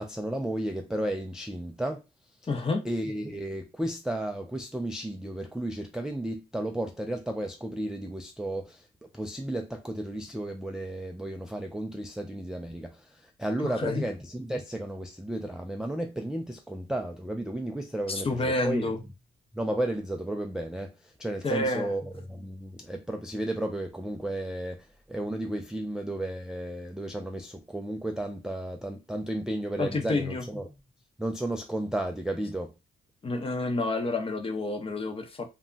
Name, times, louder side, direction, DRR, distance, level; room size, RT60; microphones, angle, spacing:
voice 1, 0.0-2.0 2.8-8.8 9.1-18.9 19.5-30.7 31.2-32.7, right 1 dB, 5° right, 0.3 m, -33 dB
voice 2, 2.5-2.8 13.6-14.0 18.1-19.0 21.4-21.9 29.8-30.4 33.2-35.4, left 2 dB, 30° left, 0.7 m, -29 dB
2.2 x 2.1 x 3.7 m
cardioid pair, 90°, 20 cm